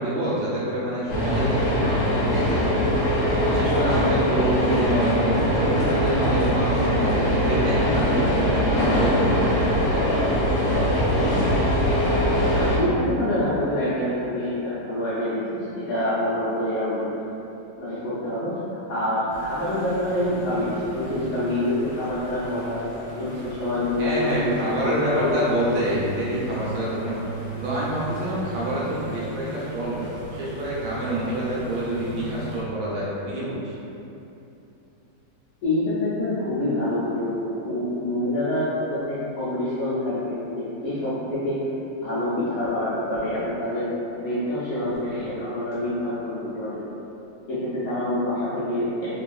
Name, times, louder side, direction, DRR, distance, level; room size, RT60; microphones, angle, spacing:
voice 1, 0.0-3.1 3.5-9.8 24.0-27.2 27.6-33.7, right 1 dB, 75° right, -8 dB, 1.4 m, -27 dB
sound 1, 1.1-12.8, equal, 85° left, 1.3 m, -22 dB
voice 2, 12.7-17.1 17.8-25.3 35.6-41.7 42.0-43.9 44.2-46.8 47.5-49.2, left 1 dB, 65° left, -11 dB, 0.9 m, -26 dB
sound 2, 19.3-32.6, right 2 dB, 35° right, 0.6 m, -38 dB
3.4 x 2.4 x 2.3 m, 2.9 s
omnidirectional pair, 2.0 m